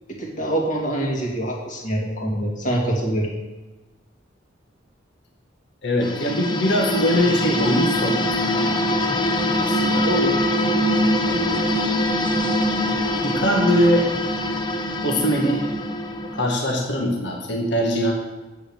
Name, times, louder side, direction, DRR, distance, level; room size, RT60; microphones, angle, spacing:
voice 1, 0.1-3.3 10.0-10.4, right 1 dB, 45° left, -2 dB, 2.5 m, -25 dB
voice 2, 5.8-8.7 9.6-10.1 11.3-12.0 13.2-14.1 15.0-15.7 16.3-18.1, equal, 65° left, 0 dB, 1.7 m, -22 dB
sound 1, 6.0-16.5, left 1 dB, 25° left, 0.9 m, -23 dB
8.4 x 7.0 x 7.1 m, 1.2 s
head